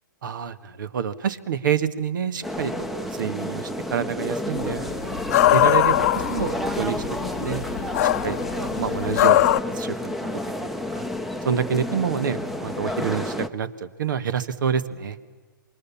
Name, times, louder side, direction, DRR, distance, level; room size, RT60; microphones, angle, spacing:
voice 1, 0.2-4.9 5.5-5.9 6.3-7.0 7.4-7.6 8.2-9.5 9.7-10.3 10.6-11.0 11.5-15.2, right 7 dB, 65° right, 14 dB, 1.7 m, -27 dB
sound 1, 2.4-13.5, left 1 dB, ahead, 0.9 m, -30 dB
sound 2, 4.6-9.6, left 13 dB, 50° left, 0.9 m, -22 dB
28.0 x 24.0 x 7.2 m, 1.4 s
hypercardioid pair, 135°, 11 cm